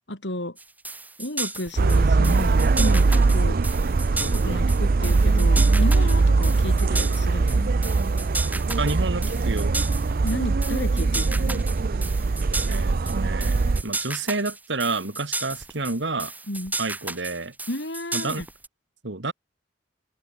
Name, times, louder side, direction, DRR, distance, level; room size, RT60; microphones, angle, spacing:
voice 1, 0.1-0.6 1.2-3.6 4.1-7.7 10.2-11.6 16.5-16.7 17.7-18.5, left 1 dB, 80° left, 5.3 m, -32 dB
sound 1, 0.6-18.7, right 3 dB, 10° right, 1.8 m, -33 dB
sound 2, 1.8-13.8, right 3 dB, 55° right, 0.5 m, -21 dB
voice 2, 8.8-9.8 12.7-13.6 13.8-16.3 16.8-17.5 18.1-18.4 19.0-19.3, right 3 dB, 85° right, 2.3 m, -29 dB
open air
head